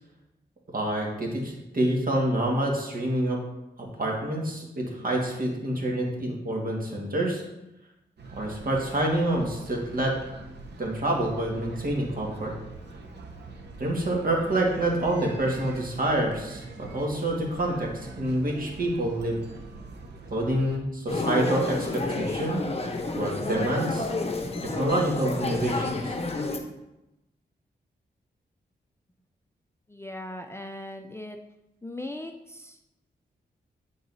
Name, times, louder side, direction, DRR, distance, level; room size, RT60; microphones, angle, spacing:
voice 1, 0.7-3.4 4.0-7.4 8.4-10.2 10.8-12.5 13.8-19.4 20.3-22.6 23.2-24.1 24.6-26.2, right 1 dB, 50° right, -1 dB, 1.7 m, -27 dB
sound 1, 8.2-20.8, right 3 dB, 70° right, 0.8 m, -43 dB
sound 2, 21.1-26.6, left 3 dB, 35° left, 0.8 m, -30 dB
voice 2, 29.9-31.4 31.8-32.8, left 1 dB, 15° left, 5 dB, 0.5 m, -38 dB
9.1 x 3.9 x 2.7 m, 0.94 s
cardioid pair, 55°, 18 cm